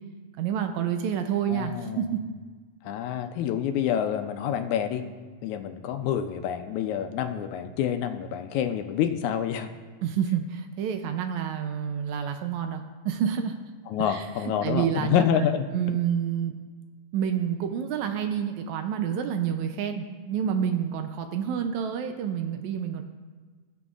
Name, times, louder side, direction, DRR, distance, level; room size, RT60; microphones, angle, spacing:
voice 1, 0.4-2.2 10.0-13.5 14.0-14.3 14.6-15.3 15.7-16.5 17.1-23.0, right 8 dB, 80° right, 7 dB, 1.9 m, -28 dB
voice 2, 1.5-2.1 2.8-5.1 5.4-9.7 13.9-15.7, left 9 dB, 80° left, 7 dB, 1.9 m, -27 dB
18.5 x 7.9 x 2.4 m, 1.4 s
omnidirectional pair, 3.5 m